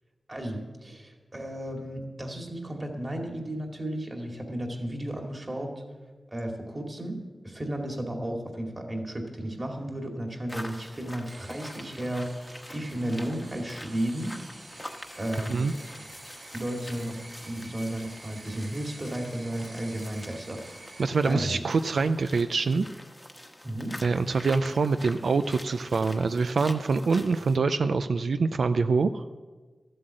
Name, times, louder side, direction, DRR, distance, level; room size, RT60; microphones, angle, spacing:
voice 1, 0.3-5.7 6.3-12.3 12.7-14.4 15.2-15.7 16.5-21.6 23.6-24.0, right 1 dB, 25° right, 1 dB, 2.2 m, -34 dB
sound 1, 10.5-27.6, left 1 dB, 10° left, 1.1 m, -46 dB
sound 2, 11.3-21.1, right 2 dB, 45° right, 2.4 m, -48 dB
voice 2, 21.0-22.9 24.0-29.2, right 4 dB, 80° right, 10 dB, 0.4 m, -25 dB
13.5 x 7.7 x 7.6 m, 1.4 s
wide cardioid pair, 105°, 0 cm